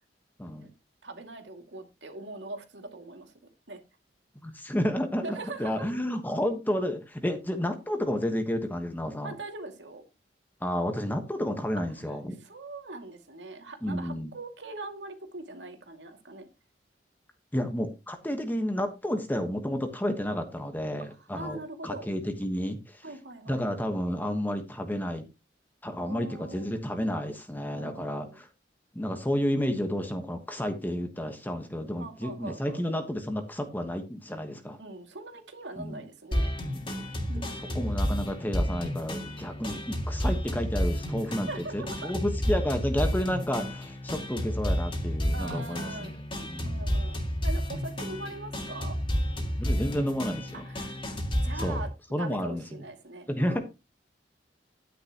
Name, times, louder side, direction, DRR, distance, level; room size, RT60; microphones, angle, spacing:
voice 1, 0.4-0.7 4.4-9.3 10.6-12.4 13.8-14.3 17.5-23.0 23.5-25.2 25.8-28.5 28.9-34.8 35.8-36.0 36.7-36.9 37.7-46.1 46.5-46.8 49.6-50.6 51.6-51.8 52.1-52.6 53.3-53.6, equal, 10° left, 1.2 m, -31 dB
voice 2, 1.0-3.3 3.7-3.8 5.2-6.0 9.2-10.0 12.1-16.5 21.2-22.1 23.0-23.6 26.0-26.8 27.7-28.4 32.0-32.8 34.8-36.5 37.3-37.9 41.5-42.1 45.3-47.2 47.4-49.0 50.5-51.0 51.4-51.9 52.2-53.6, right 2 dB, 85° right, 2.3 m, -41 dB
sound 1, 36.3-51.9, equal, 30° left, 2.6 m, -31 dB
11.0 x 10.0 x 3.0 m
head